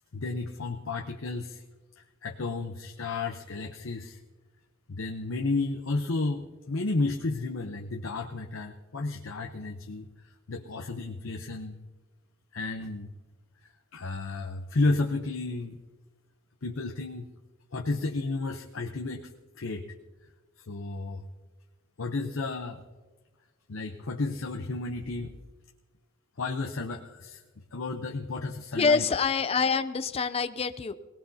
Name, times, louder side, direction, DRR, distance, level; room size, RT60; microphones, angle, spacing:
voice 1, 0.1-1.6 2.0-4.2 4.9-10.1 10.5-11.8 12.5-13.1 13.9-15.8 16.6-17.3 17.7-19.3 19.6-19.9 20.6-21.2 22.0-22.8 23.7-25.3 26.4-27.4 27.7-29.0, left 3 dB, 75° left, 3 dB, 0.8 m, -32 dB
voice 2, 28.8-30.9, left 5 dB, 30° left, 11 dB, 0.4 m, -26 dB
23.0 x 18.5 x 2.8 m, 1.3 s
head